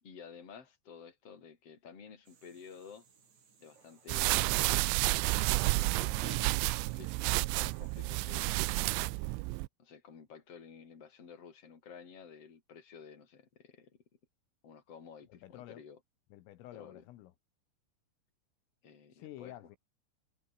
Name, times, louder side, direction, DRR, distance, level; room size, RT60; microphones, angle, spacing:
voice 1, 0.0-3.1 3.6-4.5 5.3-9.1 9.8-14.0 14.6-16.0 16.7-17.0 18.8-19.6, left 6 dB, 30° left, 4.4 m, -52 dB
sound 1, 2.2-9.0, right 6 dB, 40° right, 4.5 m, -65 dB
sound 2, 4.1-9.7, right 24 dB, 90° right, 2.7 m, -30 dB
voice 2, 15.3-15.8 16.3-17.3 19.1-19.8, left 14 dB, 80° left, 3.9 m, -50 dB
omnidirectional pair, 6.0 m